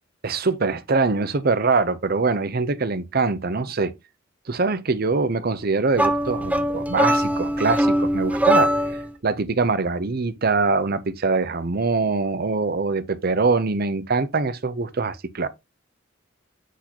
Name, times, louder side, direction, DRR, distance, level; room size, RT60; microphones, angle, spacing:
voice 1, 0.2-3.9 4.5-8.8 9.2-15.5, right 4 dB, 55° right, 0.8 m, -23 dB
sound 1, 5.9-9.1, equal, 10° right, 0.8 m, -21 dB
8.1 x 4.2 x 2.9 m
head